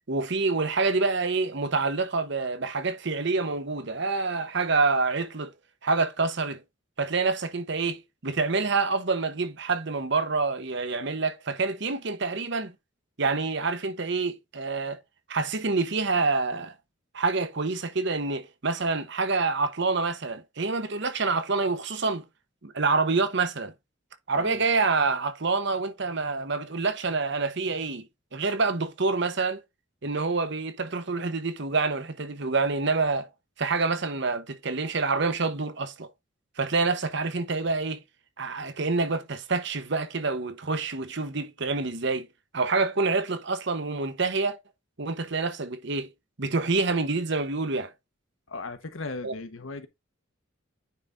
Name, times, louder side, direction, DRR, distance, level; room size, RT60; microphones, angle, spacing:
voice 1, 0.1-5.5 5.8-6.6 7.0-12.7 13.2-15.0 15.3-16.7 17.1-22.2 22.6-23.7 24.3-28.1 28.3-29.6 30.0-33.3 33.6-36.1 36.6-38.0 38.4-42.3 42.5-44.6 45.0-46.1 46.4-47.9 49.2-49.3, right 3 dB, 60° right, 1.1 m, -27 dB
voice 2, 48.5-49.9, left 3 dB, 90° left, 1.2 m, -37 dB
9.7 x 4.0 x 3.5 m
head